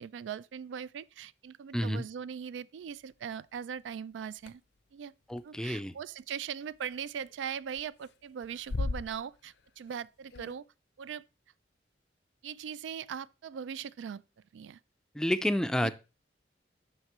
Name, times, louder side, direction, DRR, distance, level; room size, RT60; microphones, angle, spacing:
voice 1, 0.0-4.6 4.9-5.1 5.4-10.7 11.0-11.2 12.4-14.2 14.5-14.8 15.8-15.9, right 7 dB, 90° right, 0.3 m, -40 dB
voice 2, 1.7-2.0 5.3-5.9 15.1-15.9, equal, 5° left, 0.3 m, -29 dB
sound 1, 3.6-3.7 4.5-4.6 5.3-5.4 6.9-7.4 7.7-8.1 8.4-9.7 10.0-10.1 10.3-10.5, left 3 dB, 65° left, 0.5 m, -36 dB
7.8 x 5.7 x 3.0 m
head